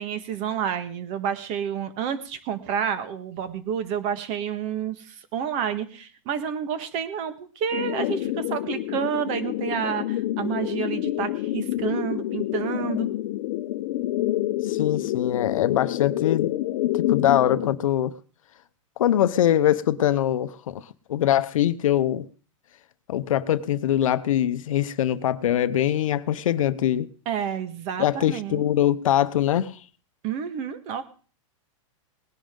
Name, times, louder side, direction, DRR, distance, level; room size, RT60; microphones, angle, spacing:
voice 1, 0.0-13.1 27.2-28.6 30.2-31.0, right 8 dB, 40° right, 1.5 m, -29 dB
sound 1, 7.7-17.7, left 15 dB, 55° left, 0.8 m, -28 dB
voice 2, 14.6-16.5 17.1-18.1 19.0-20.8 21.1-22.3 23.1-27.1 28.0-29.8, left 11 dB, 85° left, 0.8 m, -23 dB
19.0 x 10.5 x 3.8 m
supercardioid pair, 140°, 17 cm